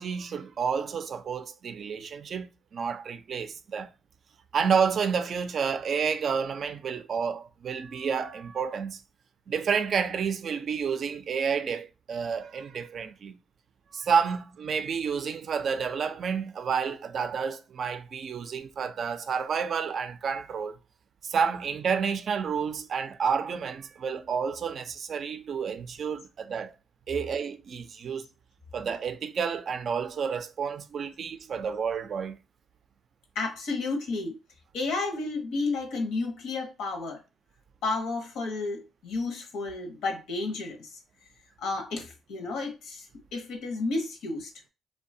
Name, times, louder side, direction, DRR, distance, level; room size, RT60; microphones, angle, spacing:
voice 1, 0.0-3.9 4.5-9.0 9.5-13.4 13.9-20.8 21.2-26.7 27.1-28.3 28.7-32.4, right 6 dB, 55° right, 0.3 m, -30 dB
voice 2, 33.3-34.4 34.7-37.2 37.8-41.0 41.6-43.1 43.3-44.5, left 3 dB, 85° left, 0.8 m, -32 dB
2.6 x 2.2 x 2.6 m
cardioid pair, 90°, 0 cm